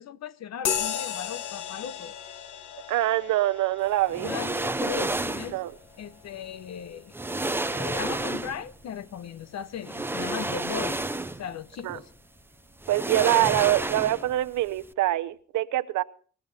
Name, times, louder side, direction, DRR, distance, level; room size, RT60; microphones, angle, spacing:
voice 1, 0.0-2.2 4.2-5.6 6.0-7.1 7.7-11.0 11.4-12.1 13.4-13.5, left 8 dB, 60° left, 1.0 m, -37 dB
sound 1, 0.6-8.5, left 8 dB, 80° left, 1.7 m, -36 dB
voice 2, 2.9-4.3 5.5-5.7 11.8-12.0 12.9-16.0, right 15 dB, 80° right, 0.9 m, -24 dB
sound 2, 4.1-5.6 6.7-6.8 7.1-8.7 9.8-11.5 11.9-12.0 12.8-14.4 14.7-14.8, right 2 dB, 5° right, 0.6 m, -30 dB
20.5 x 14.0 x 4.2 m
cardioid pair, 90°, 30 cm